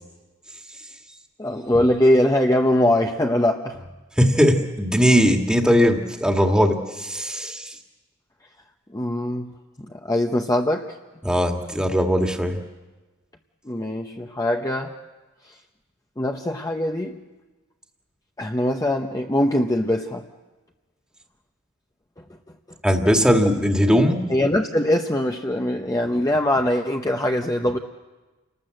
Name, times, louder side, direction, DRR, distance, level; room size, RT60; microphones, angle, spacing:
voice 1, 1.4-3.8 8.9-9.5 10.0-10.9 13.7-14.9 16.2-17.2 18.4-20.2 24.3-27.8, left 1 dB, 15° left, 3 dB, 0.9 m, -22 dB
voice 2, 4.2-7.7 11.2-12.6 22.8-24.2, equal, 5° right, 3 dB, 1.9 m, -19 dB
29.0 x 19.5 x 7.8 m, 1.2 s
head